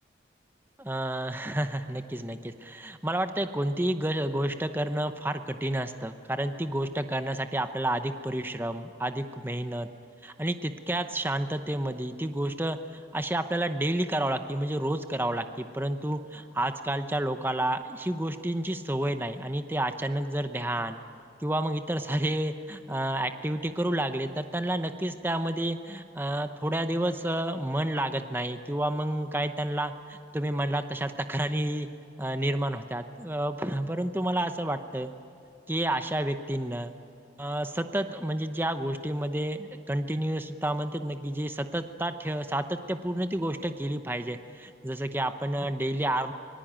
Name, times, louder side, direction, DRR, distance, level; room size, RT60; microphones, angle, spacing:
voice 1, 0.8-9.9 10.2-12.8 13.1-21.0 21.4-31.9 32.2-35.1 35.7-36.9 37.4-46.3, right 1 dB, 10° right, 8 dB, 0.8 m, -30 dB
24.5 x 19.5 x 8.9 m, 2.6 s
head